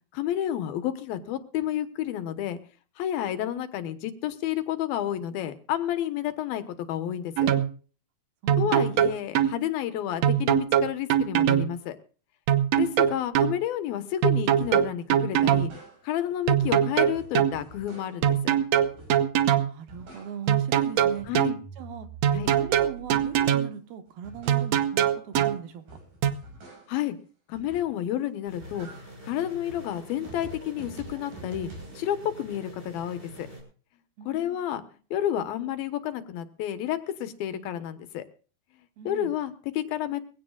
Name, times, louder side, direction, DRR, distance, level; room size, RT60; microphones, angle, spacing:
voice 1, 0.1-2.6 3.0-7.5 8.6-12.0 12.8-15.7 16.0-18.5 21.3-21.6 22.3-22.5 26.9-27.2 27.5-28.9 29.2-33.5 34.2-34.8 35.1-38.3 39.1-40.2, left 11 dB, 75° left, 10 dB, 2.9 m, -30 dB
sound 1, 7.4-7.7 8.5-9.5 10.2-11.7 12.5-13.5 14.2-15.7 16.5-17.5 18.2-19.7 20.5-21.6 22.2-23.7 24.5-25.6 26.2-26.3, right 10 dB, 90° right, 1.5 m, -22 dB
voice 2, 8.4-8.8 19.6-21.3 21.8-22.1 22.5-25.8 34.2-34.6 39.0-39.3, right 9 dB, 75° right, 8 dB, 3.2 m, -39 dB
sound 2, 14.6-14.9 15.3-16.3 16.6-18.4 18.8-19.4 19.7-20.7 21.0-23.7 24.1-27.1 27.5-28.1 28.4-32.1, right 2 dB, 55° right, 7.1 m, -47 dB
sound 3, 28.5-33.6, equal, 15° right, 6.9 m, -46 dB
22.0 x 16.5 x 2.4 m, 0.39 s
omnidirectional pair, 4.4 m